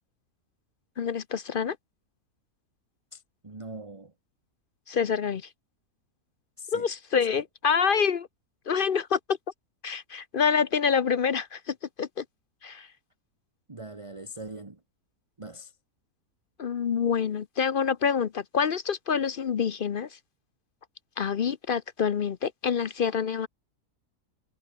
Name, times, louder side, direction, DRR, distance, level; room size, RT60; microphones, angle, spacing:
voice 1, 1.0-1.8 4.9-5.5 6.7-8.3 8.7-9.4 9.8-12.2 12.6-12.9 16.6-20.1 21.2-23.5, left 6 dB, 50° left, 0.6 m, -27 dB
voice 2, 3.1-4.1 6.6-6.9 13.7-14.8 15.4-15.7, right 1 dB, 20° right, 1.6 m, -42 dB
omnidirectional pair, 1.7 m